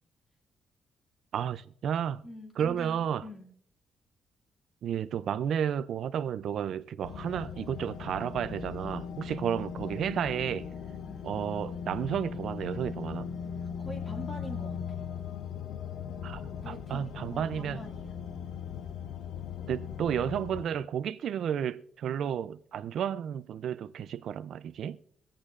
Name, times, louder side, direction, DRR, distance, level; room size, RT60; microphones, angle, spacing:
voice 1, 1.3-2.2 2.6-3.2 4.8-10.7 11.2-13.3 16.2-17.8 19.7-25.0, right 9 dB, 60° right, 0.3 m, -32 dB
voice 2, 2.2-3.5 11.1-11.3 13.6-15.1 16.6-18.1, left 1 dB, 20° left, 2.0 m, -45 dB
sound 1, 7.0-20.6, left 7 dB, 65° left, 0.5 m, -39 dB
24.0 x 8.5 x 2.4 m
cardioid pair, 165°, 0 cm